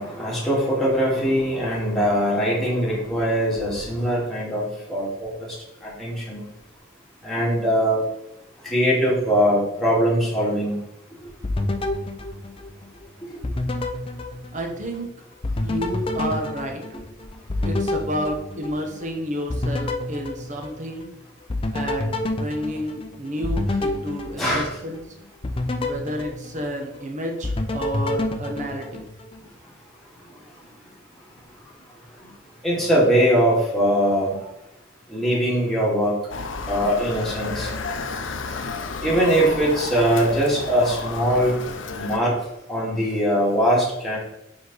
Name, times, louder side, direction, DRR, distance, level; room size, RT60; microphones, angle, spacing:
voice 1, 0.0-5.6 5.8-6.4 7.2-8.0 8.6-10.8 13.3-13.4 24.4-24.7 32.2-32.3 32.6-34.5 35.1-36.2 36.7-37.7 39.0-41.6 41.9-42.4 42.7-44.2, equal, ahead, -7 dB, 2.1 m, -21 dB
sound 1, 11.4-13.0 13.4-15.1 15.4-19.1 19.5-21.1 21.5-25.0 25.4-27.1 27.4-29.4, left 1 dB, 30° left, 0.5 m, -28 dB
voice 2, 14.5-15.1 15.6-16.8 17.6-21.1 21.7-25.0 25.8-29.0, equal, 40° right, 3 dB, 1.0 m, -30 dB
Motor vehicle (road) / Siren, 36.3-42.2, left 4 dB, 70° left, 0.6 m, -31 dB
5.0 x 4.8 x 4.1 m, 0.87 s
head